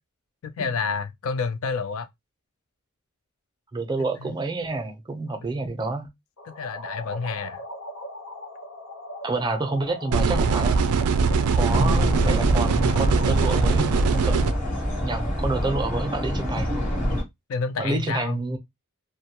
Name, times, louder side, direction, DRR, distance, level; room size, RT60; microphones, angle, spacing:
voice 1, 0.4-2.1 4.2-4.3 6.6-7.6 11.8-12.3 17.5-18.4, left 5 dB, 70° left, 0.4 m, -29 dB
voice 2, 3.7-6.1 9.2-10.8 11.5-14.5 15.0-16.7 17.8-18.6, right 2 dB, 20° right, 0.5 m, -28 dB
sound 1, 6.4-16.3, left 1 dB, 90° left, 0.9 m, -39 dB
sound 2, 10.1-14.5, right 5 dB, 85° right, 0.3 m, -22 dB
sound 3, 11.7-17.2, equal, 35° left, 0.9 m, -27 dB
2.2 x 2.1 x 2.8 m
head